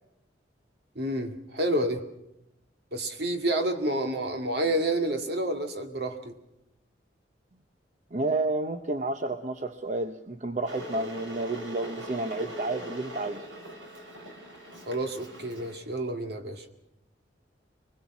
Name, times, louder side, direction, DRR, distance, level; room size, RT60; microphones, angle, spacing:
voice 1, 1.0-2.0 2.9-6.3 14.9-16.6, right 1 dB, 60° right, 5 dB, 2.2 m, -29 dB
voice 2, 8.1-13.5, right 2 dB, 40° right, 8 dB, 0.8 m, -31 dB
Water / Boiling, 10.6-15.8, equal, 85° right, 4.9 m, -41 dB
23.5 x 20.5 x 6.1 m, 0.88 s
head